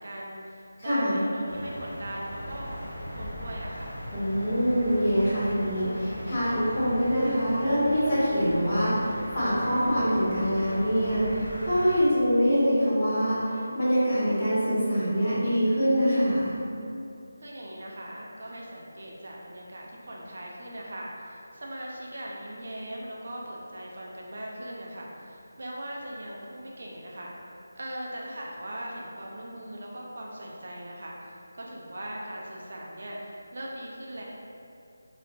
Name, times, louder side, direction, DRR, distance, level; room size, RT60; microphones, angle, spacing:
voice 1, 0.0-4.0 17.4-27.3 27.8-34.2, right 1 dB, 60° right, -3 dB, 0.4 m, -39 dB
voice 2, 0.8-1.2 4.1-16.5, equal, 40° left, -13 dB, 1.3 m, -24 dB
sound 1, 1.5-12.1, equal, 80° left, 0.7 m, -39 dB
3.0 x 2.1 x 2.5 m, 2.5 s
figure-of-eight pair, 160°, 0 cm